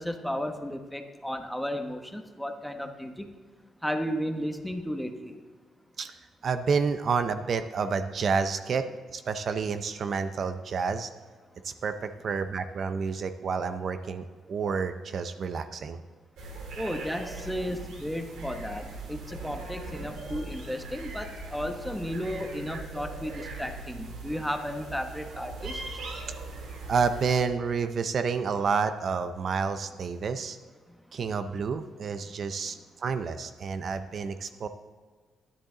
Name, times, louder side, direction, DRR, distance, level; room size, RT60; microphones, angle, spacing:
voice 1, 0.0-3.3 3.8-5.4 16.8-25.8, equal, 5° left, 6 dB, 1.0 m, -34 dB
voice 2, 6.4-8.8 9.1-11.1 11.6-16.0 26.9-30.6 31.1-34.7, right 5 dB, 55° right, 10 dB, 0.5 m, -29 dB
sound 1, 16.4-27.4, right 3 dB, 80° right, 2.1 m, -40 dB
10.0 x 10.0 x 3.9 m, 1.5 s
cardioid pair, 90°, 0 cm